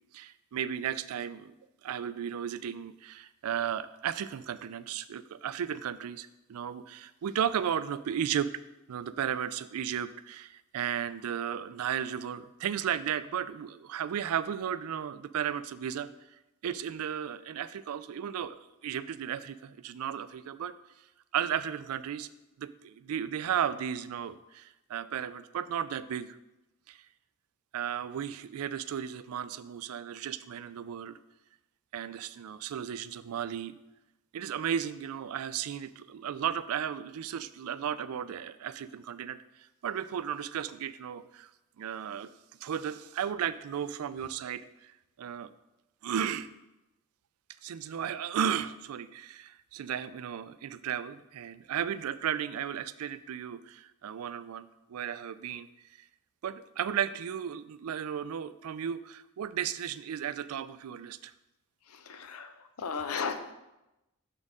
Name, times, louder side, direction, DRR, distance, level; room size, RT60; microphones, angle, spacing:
voice 1, 0.1-1.5 1.8-8.5 8.9-16.1 16.6-20.7 21.3-22.3 22.6-26.4 26.9-27.0 27.7-31.1 31.9-33.7 34.3-39.4 39.8-41.5 41.8-42.3 42.6-44.9 45.2-45.5 46.0-46.5 47.6-55.7 56.4-61.3, right 9 dB, 85° right, 15 dB, 0.4 m, -34 dB
voice 2, 61.9-63.5, left 5 dB, 85° left, 9 dB, 0.6 m, -36 dB
6.4 x 6.4 x 3.6 m, 0.96 s
head